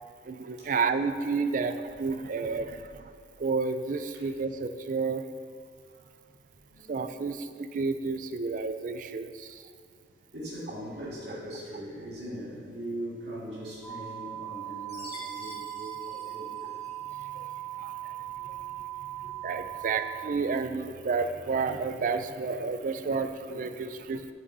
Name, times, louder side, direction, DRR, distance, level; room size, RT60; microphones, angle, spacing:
voice 1, 0.3-2.8 3.4-5.2 6.9-7.4 7.7-9.3 17.8-17.9 19.4-24.3, right 4 dB, 50° right, 10 dB, 0.4 m, -30 dB
voice 2, 6.6-7.5 10.3-16.8 18.6-18.7 19.2-19.3 19.6-19.7, right 1 dB, 75° right, -7 dB, 2.3 m, -41 dB
sound 1, 13.8-20.3, right 13 dB, 10° left, 0.8 m, -39 dB
Chime, 14.9-17.2, left 3 dB, 75° left, 1.7 m, -48 dB
9.3 x 6.1 x 4.0 m, 2.2 s
head